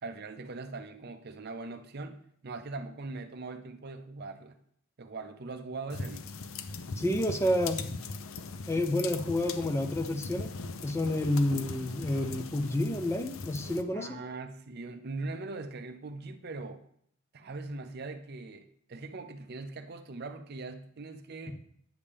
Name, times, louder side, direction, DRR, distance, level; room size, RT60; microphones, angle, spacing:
voice 1, 0.0-4.6 5.0-6.3 13.9-16.8 17.3-21.7, right 3 dB, 45° right, 8 dB, 0.5 m, -41 dB
sound 1, 5.9-13.8, left 4 dB, 65° left, 0.6 m, -40 dB
voice 2, 7.0-7.8 8.7-10.5 10.8-14.1, left 1 dB, 10° left, 5 dB, 0.6 m, -29 dB
9.6 x 7.1 x 3.4 m, 0.69 s
head